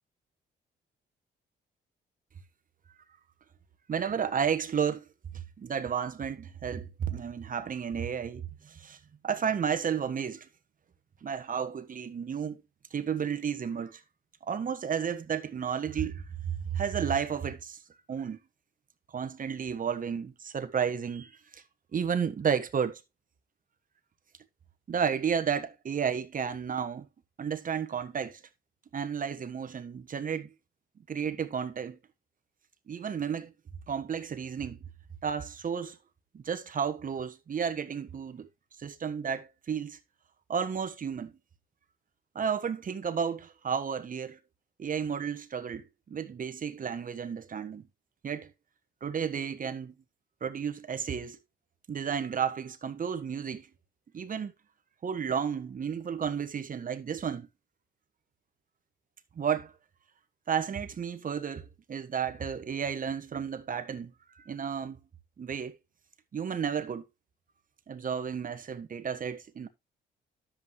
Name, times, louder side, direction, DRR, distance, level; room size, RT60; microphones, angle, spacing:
voice 1, 3.9-5.0 5.6-9.0 9.2-10.5 11.2-12.6 12.9-14.0 14.4-17.8 18.1-18.4 19.1-21.6 21.9-23.0 24.9-27.0 27.4-28.4 28.9-30.5 31.1-32.0 32.9-33.5 33.9-34.8 35.2-36.0 36.3-38.5 38.8-40.0 40.5-41.4 42.3-44.4 44.8-47.8 48.2-48.5 49.0-50.0 50.4-51.4 51.9-53.7 54.1-54.5 55.0-57.5 59.3-59.7 60.5-65.0 65.4-65.8 66.3-67.1 67.9-69.7, right 7 dB, 45° right, 1.3 m, -32 dB
10.5 x 7.5 x 3.2 m
cardioid pair, 90°, 20 cm